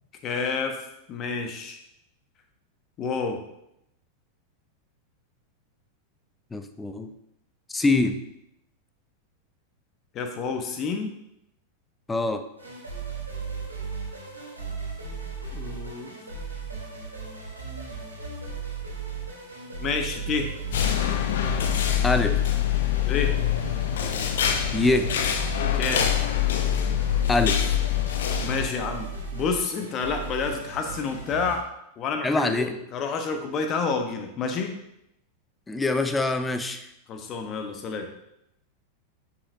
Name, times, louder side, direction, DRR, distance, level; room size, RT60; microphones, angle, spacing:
voice 1, 0.2-0.8 1.1-1.8 3.0-3.4 10.1-11.1 15.5-16.2 19.8-20.5 23.0-23.4 25.7-26.1 28.4-31.6 32.0-34.7 37.1-38.1, left 5 dB, 35° left, 5 dB, 1.0 m, -29 dB
voice 2, 6.5-7.1 7.7-8.1 12.1-12.4 22.0-22.4 24.7-25.1 27.3-27.6 32.2-32.7 35.7-36.9, left 2 dB, 10° left, 9 dB, 0.6 m, -24 dB
sound 1, 12.6-31.6, right 5 dB, 85° right, 2.3 m, -36 dB
sound 2, 20.7-28.7, left 11 dB, 60° left, 0.7 m, -25 dB
9.7 x 5.6 x 2.6 m, 0.81 s
figure-of-eight pair, 90°, 0 cm